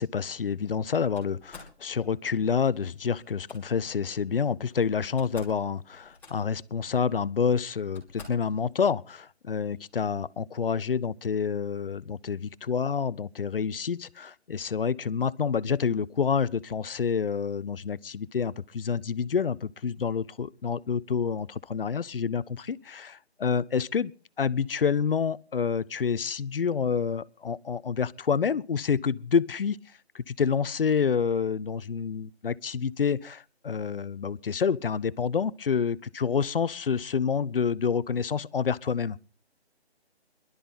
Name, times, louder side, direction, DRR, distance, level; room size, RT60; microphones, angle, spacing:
voice 1, 0.0-24.1 24.4-29.8 30.1-39.2, left 6 dB, 55° left, 0.6 m, -28 dB
Slam, 1.1-1.8 3.2-3.6 4.7-4.8 5.0-5.6 5.9-6.6 7.4-7.5 7.9-8.5, left 4 dB, 5° left, 2.7 m, -48 dB
22.5 x 12.0 x 4.0 m
figure-of-eight pair, 150°, 33 cm